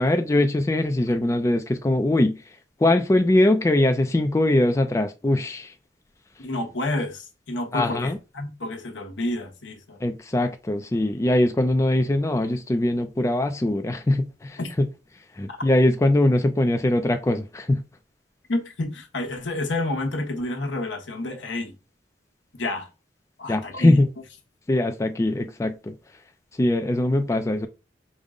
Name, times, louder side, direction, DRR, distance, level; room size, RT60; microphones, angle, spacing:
voice 1, 0.0-2.4 2.8-5.7 7.7-8.2 10.0-14.6 15.3-17.8 23.5-24.1 24.7-25.9 26.6-27.7, left 1 dB, 15° left, 0.3 m, -21 dB
voice 2, 6.4-10.0 14.6-14.7 15.5-15.6 18.5-21.8 22.5-22.9 23.4-24.0, left 2 dB, 80° left, 1.0 m, -29 dB
5.1 x 2.1 x 3.6 m
head